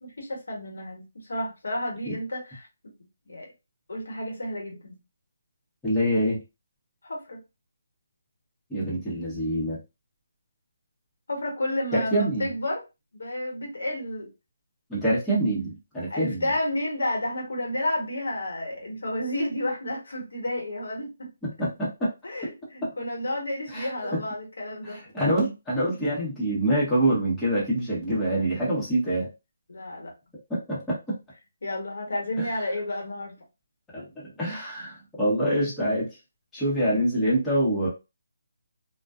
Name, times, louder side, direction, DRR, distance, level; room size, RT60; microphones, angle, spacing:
voice 1, 0.0-2.9 3.3-3.5 3.9-5.0 7.0-7.4 11.3-12.8 13.1-14.3 16.1-21.3 22.2-25.0 29.7-30.1 31.6-33.4, left 1 dB, 75° left, 1.1 m, -31 dB
voice 2, 5.8-6.4 8.7-9.8 11.9-12.5 14.9-16.4 21.6-22.1 22.8-22.9 23.7-24.2 24.8-29.3 30.5-31.2 32.4-32.5 33.9-36.1 36.5-37.9, right 1 dB, 5° left, 0.9 m, -26 dB
2.5 x 2.2 x 2.3 m
hypercardioid pair, 165°, 0 cm